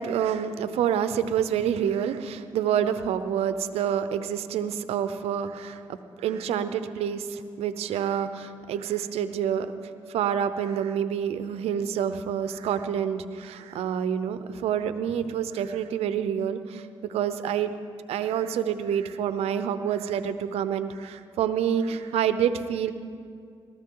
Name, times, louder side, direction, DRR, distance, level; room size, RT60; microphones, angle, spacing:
voice 1, 0.0-9.7 10.1-16.8 17.1-17.7 18.1-22.9, right 9 dB, 85° right, 11 dB, 0.7 m, -27 dB
19.5 x 13.5 x 3.9 m, 2.2 s
cardioid pair, 70°, 10 cm